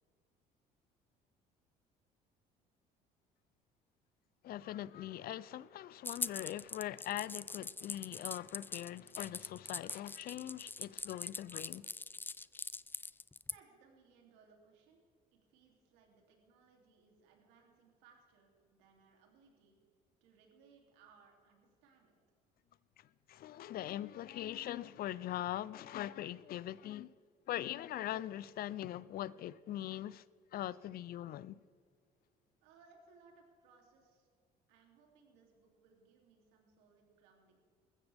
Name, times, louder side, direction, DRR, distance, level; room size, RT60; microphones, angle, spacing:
voice 1, 4.4-11.9 23.0-27.2 27.5-30.2 30.5-31.6, left 13 dB, 55° left, 0.6 m, -42 dB
sound 1, 6.1-13.5, left 3 dB, 10° left, 0.4 m, -42 dB
voice 2, 13.5-15.0 15.3-19.8 20.2-22.2 32.6-34.3 34.7-37.6, right 5 dB, 80° right, 3.1 m, -66 dB
21.0 x 15.0 x 3.5 m
supercardioid pair, 75°, 18 cm